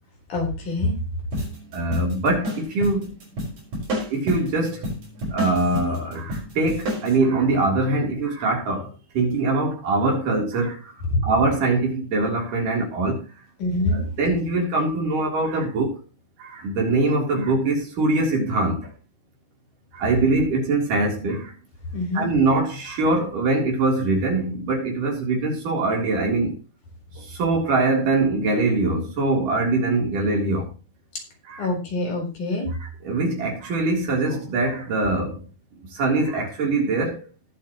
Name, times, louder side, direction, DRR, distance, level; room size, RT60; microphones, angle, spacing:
voice 1, 0.3-1.0 11.1-11.2 13.6-14.0 21.9-22.3 31.6-32.7, left 2 dB, 75° left, 5.6 m, -25 dB
sound 1, 1.3-7.2, equal, 70° right, 7.1 m, -30 dB
voice 2, 1.7-3.2 4.1-4.9 5.3-10.9 11.2-13.2 13.9-16.0 16.4-18.9 19.9-21.5 22.1-26.6 27.2-30.7 31.4-31.7 32.8-35.4 35.9-37.3, right 2 dB, 85° right, 5.1 m, -23 dB
19.5 x 8.1 x 3.1 m
omnidirectional pair, 3.6 m